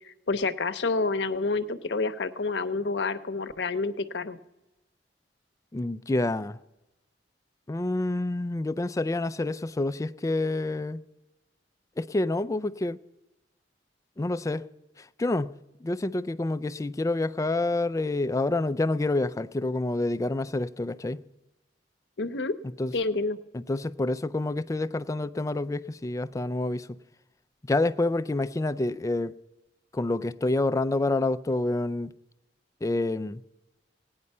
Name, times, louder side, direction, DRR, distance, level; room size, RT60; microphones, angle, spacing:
voice 1, 0.3-4.4 22.2-22.6 22.9-23.4, left 3 dB, 75° left, 0.7 m, -28 dB
voice 2, 5.7-6.6 7.7-11.0 12.0-13.0 14.2-14.7 15.0-15.5 15.8-21.2 22.8-22.9 23.5-26.9 27.6-29.3 29.9-32.1 32.8-33.4, left 2 dB, 20° left, 0.4 m, -28 dB
17.5 x 9.5 x 5.4 m
head